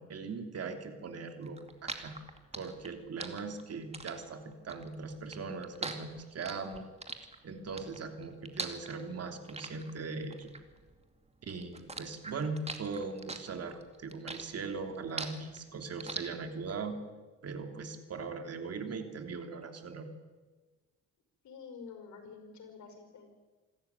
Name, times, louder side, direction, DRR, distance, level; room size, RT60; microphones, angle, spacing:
voice 1, 0.0-2.2 2.5-6.8 7.4-10.5 11.4-17.0 17.4-20.1, right 4 dB, 55° right, 6 dB, 3.2 m, -40 dB
sound 1, 1.5-11.3 11.6-16.8, right 3 dB, 20° right, 2.5 m, -42 dB
voice 2, 21.4-23.3, left 5 dB, 70° left, 6 dB, 5.5 m, -49 dB
26.5 x 13.5 x 9.7 m, 1.3 s
cardioid pair, 90°, 30 cm